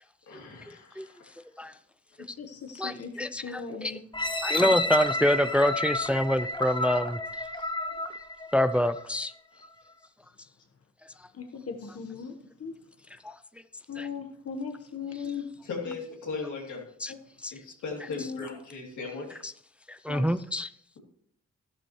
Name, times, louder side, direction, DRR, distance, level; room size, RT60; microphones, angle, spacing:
voice 1, 0.3-1.3 7.5-7.7 15.6-16.9 17.5-19.4, left 4 dB, 85° left, -1 dB, 2.9 m, -38 dB
voice 2, 2.2-4.0 4.6-4.7 11.3-12.3 12.6-12.8 13.9-15.5 15.8-16.0 17.1-17.2 18.2-18.6 20.1-20.4, left 5 dB, 55° left, 5 dB, 1.2 m, -38 dB
voice 3, 2.8-3.9 4.4-7.2 8.5-9.3 13.2-13.3 14.0-14.1 17.0-17.1 17.4-17.5 19.4-19.5 19.9-20.7, left 1 dB, 5° right, 13 dB, 0.5 m, -26 dB
sound 1, 4.1-9.1 9.7-9.8, left 2 dB, 15° left, 0.9 m, -30 dB
12.0 x 12.0 x 3.1 m, 0.64 s
cardioid pair, 55°, 29 cm